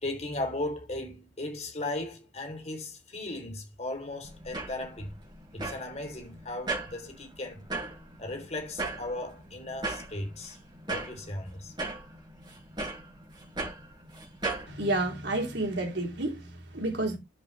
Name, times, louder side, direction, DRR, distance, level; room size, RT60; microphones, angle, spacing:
voice 1, 0.0-5.1 5.5-7.6 8.2-10.6 10.9-11.7, left 2 dB, 35° left, 3.5 m, -36 dB
sound 1, 4.2-14.7, right 3 dB, 25° right, 7.7 m, -38 dB
voice 2, 14.7-17.2, right 2 dB, 70° right, 3.6 m, -30 dB
10.5 x 7.1 x 3.3 m
head